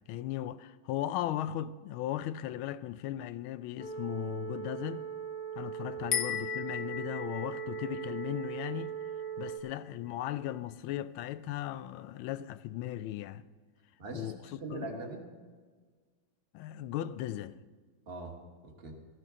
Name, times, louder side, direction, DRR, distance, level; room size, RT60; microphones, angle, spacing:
voice 1, 0.0-5.1 5.6-9.0 9.4-13.4 14.1-14.4 14.7-14.9 16.5-17.6, left 12 dB, 90° left, 1.4 m, -37 dB
sound 1, 3.8-9.6, right 8 dB, ahead, 1.4 m, -39 dB
sound 2, 6.1-9.5, left 11 dB, 60° left, 1.2 m, -37 dB
voice 2, 14.0-15.2 18.1-18.4 18.6-19.0, right 2 dB, 30° right, 1.6 m, -42 dB
16.0 x 14.0 x 3.7 m
omnidirectional pair, 2.2 m